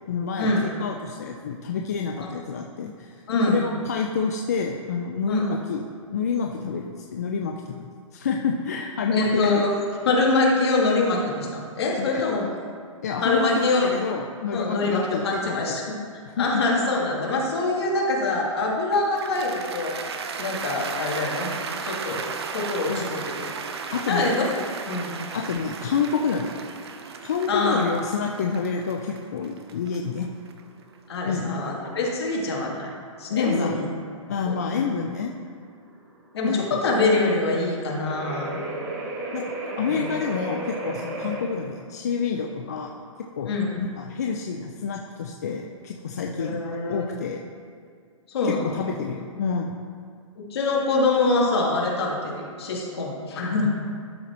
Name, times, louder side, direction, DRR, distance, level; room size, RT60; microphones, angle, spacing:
voice 1, 0.1-3.2 3.5-5.8 6.1-7.9 8.1-9.5 12.0-12.2 13.0-15.6 16.3-16.5 22.1-22.2 22.9-23.2 23.9-24.3 25.3-26.5 27.2-30.3 31.2-31.6 33.3-33.8 34.3-35.3 36.4-37.1 39.3-39.4 39.8-43.0 43.4-46.6 46.9-47.4 48.4-49.8, left 5 dB, 30° left, 1 dB, 0.3 m, -28 dB
voice 2, 3.3-3.6 5.3-5.4 9.1-9.7 10.1-12.5 13.2-13.9 14.5-15.8 16.4-21.5 21.8-22.2 22.5-23.5 23.8-24.5 24.9-25.2 27.5-27.9 31.1-32.9 33.2-33.8 34.5-34.9 36.3-38.6 39.9-40.0 41.2-41.3 43.5-43.7 46.3-47.1 48.3-48.9 50.4-53.8, left 3 dB, 50° left, -2 dB, 1.9 m, -24 dB
Cheering / Applause, 18.9-31.1, right 5 dB, 50° right, 0.6 m, -35 dB
sound 1, 23.6-41.4, right 2 dB, 30° right, 1.0 m, -37 dB
12.0 x 4.1 x 4.3 m, 2.1 s
hypercardioid pair, 170°, 17 cm